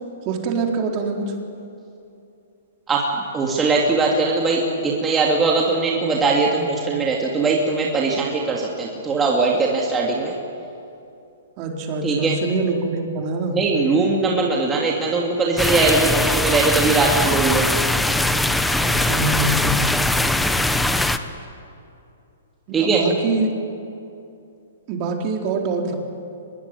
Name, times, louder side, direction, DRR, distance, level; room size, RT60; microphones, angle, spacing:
voice 1, 0.3-1.3 11.6-13.6 18.8-19.8 22.7-23.5 24.9-26.0, right 3 dB, 35° right, 1 dB, 4.2 m, -24 dB
voice 2, 3.3-10.3 12.0-12.3 13.5-17.7 22.7-23.0, right 3 dB, 15° right, -2 dB, 3.0 m, -20 dB
sound 1, 15.6-21.2, left 1 dB, 5° left, 1.1 m, -21 dB
24.5 x 21.5 x 9.9 m, 2.6 s
hypercardioid pair, 135°, 0 cm